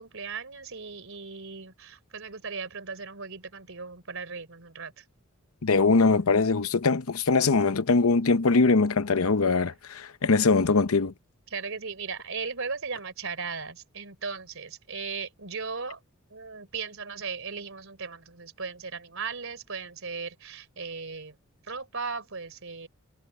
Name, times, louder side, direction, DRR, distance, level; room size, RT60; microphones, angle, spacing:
voice 1, 0.0-5.0 11.5-16.0 16.3-21.4 21.7-22.9, right 5 dB, 65° right, 3.8 m, -37 dB
voice 2, 5.6-11.1, left 4 dB, 70° left, 0.8 m, -22 dB
head